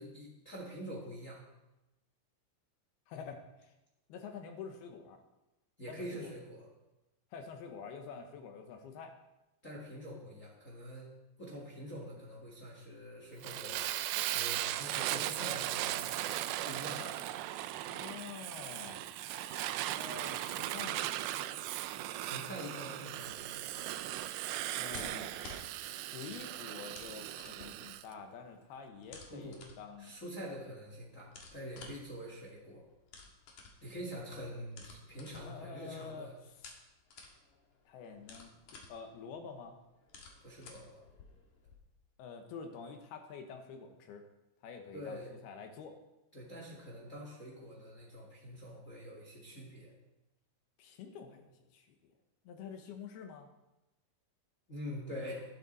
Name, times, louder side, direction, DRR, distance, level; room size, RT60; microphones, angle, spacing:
voice 1, 0.0-1.4 5.8-6.7 9.6-14.0 14.3-16.0 16.6-17.0 22.2-24.2 29.3-29.6 30.0-32.8 33.8-36.4 40.4-41.0 44.9-45.3 46.3-49.9 54.7-55.4, equal, 35° left, -2 dB, 1.3 m, -45 dB
voice 2, 3.1-3.7 4.1-5.2 5.9-6.3 7.3-9.1 17.0-17.1 17.8-21.1 24.8-30.1 35.5-36.3 37.9-39.8 42.2-44.3 44.6-46.0 50.8-52.1 52.5-53.5, left 6 dB, 70° left, 5 dB, 2.5 m, -48 dB
Fire, 13.4-28.0, right 14 dB, 90° right, 2.5 m, -38 dB
sound 1, 15.1-18.0, right 1 dB, 70° right, 1.6 m, -58 dB
sound 2, 23.2-41.8, left 4 dB, 55° left, 2.5 m, -55 dB
14.0 x 12.5 x 4.1 m, 0.98 s
omnidirectional pair, 5.6 m